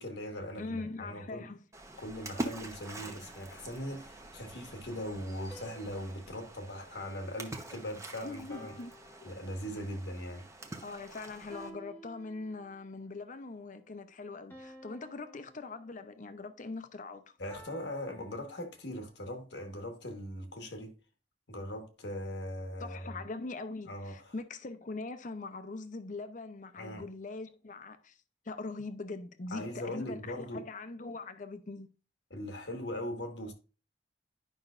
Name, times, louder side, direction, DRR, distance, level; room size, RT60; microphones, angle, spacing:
voice 1, 0.0-1.5 2.0-8.7 9.2-10.5 17.4-20.9 21.5-23.2 23.9-24.3 26.8-27.0 29.5-30.7 32.3-33.5, equal, 75° left, 1.4 m, -40 dB
voice 2, 0.6-1.6 8.2-8.9 9.2-9.3 10.8-17.4 22.8-28.2 28.4-31.9, left 3 dB, 45° left, 0.7 m, -42 dB
Splash splatter, 1.7-11.7, right 1 dB, 15° right, 0.8 m, -45 dB
sound 1, 3.1-4.3 5.5-7.9 8.5-10.0 11.5-13.0 14.5-16.4 17.5-19.1, right 1 dB, 10° left, 1.0 m, -55 dB
11.0 x 5.4 x 2.5 m
head